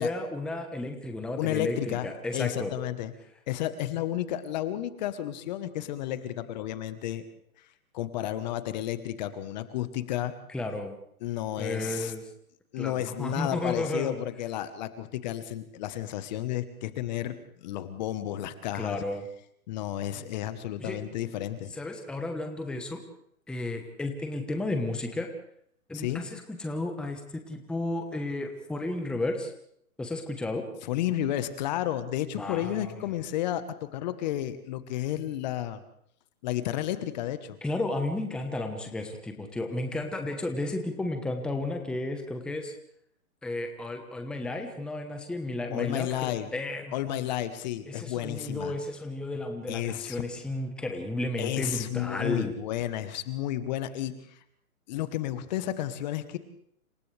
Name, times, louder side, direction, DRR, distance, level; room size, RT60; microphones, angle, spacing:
voice 1, 0.0-2.7 10.5-10.9 11.6-12.2 12.8-14.2 18.7-19.2 20.8-21.0 21.7-23.0 23.5-25.3 25.9-29.5 30.0-30.7 32.3-33.2 37.6-42.7 43.4-47.3 47.9-52.5, left 2 dB, ahead, 5 dB, 1.1 m, -33 dB
voice 2, 1.4-2.1 2.3-3.1 3.5-7.2 7.6-7.7 7.9-10.3 11.2-12.1 12.7-19.0 19.7-21.7 25.9-26.2 30.8-35.8 36.4-37.6 45.7-46.5 46.9-48.7 49.7-50.2 51.4-54.4 54.9-56.4, left 12 dB, 30° left, 12 dB, 1.2 m, -32 dB
30.0 x 27.5 x 3.4 m, 0.69 s
hypercardioid pair, 140°, 44 cm